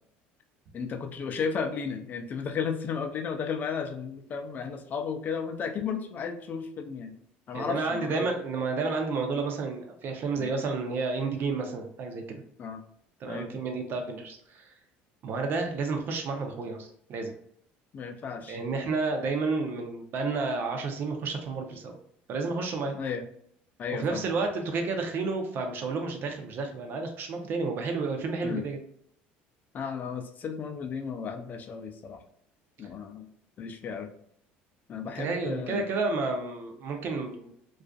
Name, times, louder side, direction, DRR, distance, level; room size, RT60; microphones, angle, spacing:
voice 1, 0.7-7.1 7.5-8.3 10.4-10.5 12.6-12.8 13.3-13.5 17.9-18.6 22.9-23.3 23.8-24.2 28.4-28.7 29.7-32.2 32.8-33.3 33.6-34.1 34.9-35.8, left 6 dB, 40° left, 5 dB, 0.4 m, -34 dB
voice 2, 7.5-12.2 13.2-14.7 15.2-17.3 18.5-22.0 22.3-22.9 23.9-28.8 35.2-37.5, right 4 dB, 50° right, 4 dB, 0.6 m, -31 dB
2.4 x 2.4 x 2.3 m, 0.67 s
supercardioid pair, 110°, 5 cm